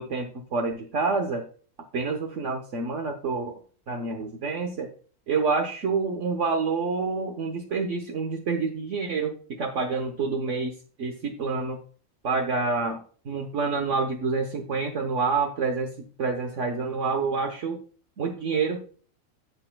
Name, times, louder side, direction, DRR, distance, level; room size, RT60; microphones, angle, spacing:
voice 1, 0.0-1.4 1.9-3.5 3.9-4.9 5.3-10.7 11.0-11.8 12.2-13.0 13.3-17.8 18.2-18.8, right 4 dB, 65° right, 3 dB, 1.4 m, -27 dB
16.5 x 5.6 x 2.3 m, 0.41 s
omnidirectional pair, 1.4 m